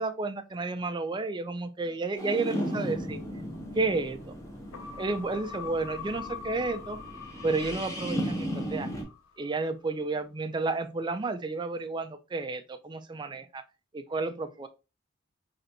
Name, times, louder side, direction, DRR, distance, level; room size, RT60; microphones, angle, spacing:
voice 1, 0.0-3.2 3.7-4.2 5.0-7.0 7.4-8.9 9.4-13.6 13.9-14.7, right 3 dB, 20° right, 9 dB, 0.3 m, -31 dB
sound 1, 2.2-9.0, equal, 15° left, 0.7 m, -36 dB
sound 2, 4.7-9.4 9.8-9.9, left 6 dB, 85° left, 0.7 m, -44 dB
3.9 x 3.2 x 2.8 m, 0.29 s
head